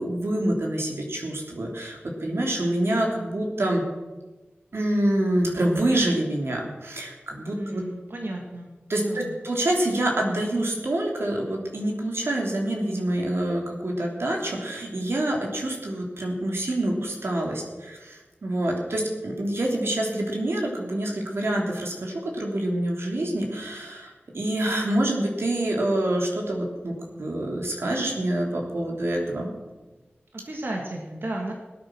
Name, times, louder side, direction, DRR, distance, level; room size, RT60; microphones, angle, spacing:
voice 1, 0.0-3.8 4.7-7.8 8.9-26.9 27.2-29.5, right 1 dB, 85° right, 0 dB, 3.2 m, -26 dB
voice 2, 7.5-8.7 9.0-9.3 30.3-31.5, right 1 dB, 65° right, 0 dB, 2.2 m, -33 dB
19.0 x 9.0 x 6.3 m, 1.2 s
wide cardioid pair, 65°, 4 cm